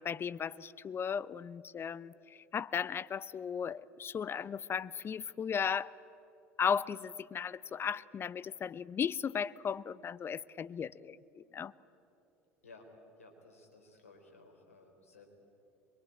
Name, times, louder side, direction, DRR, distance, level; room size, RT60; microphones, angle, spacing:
voice 1, 0.0-5.9 6.6-11.7, left 7 dB, 30° left, 19 dB, 0.6 m, -36 dB
voice 2, 13.2-15.3, left 3 dB, 85° left, 4 dB, 3.7 m, -57 dB
24.5 x 23.0 x 8.8 m, 3.0 s
hypercardioid pair, 70°, 7 cm